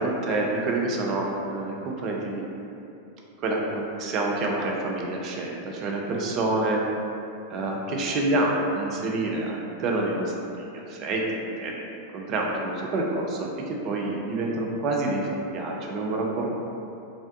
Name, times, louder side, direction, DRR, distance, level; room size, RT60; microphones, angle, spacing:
voice 1, 0.0-2.5 3.4-6.8 7.5-16.5, right 2 dB, 35° right, -1 dB, 0.3 m, -28 dB
2.3 x 2.1 x 2.5 m, 2.7 s
figure-of-eight pair, 90°, 0 cm